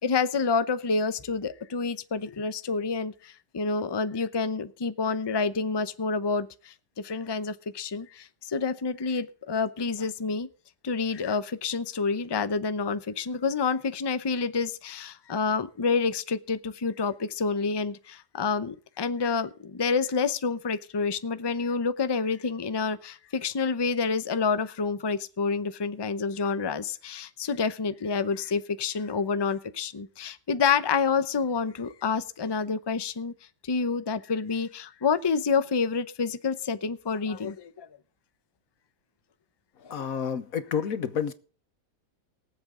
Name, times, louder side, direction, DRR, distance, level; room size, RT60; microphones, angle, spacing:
voice 1, 0.0-6.7 7.0-10.5 10.8-33.3 33.6-37.9 39.8-39.9, left 5 dB, 40° left, 0.3 m, -28 dB
voice 2, 39.9-41.3, left 7 dB, 60° left, 1.4 m, -29 dB
22.5 x 7.9 x 3.8 m
omnidirectional pair, 1.8 m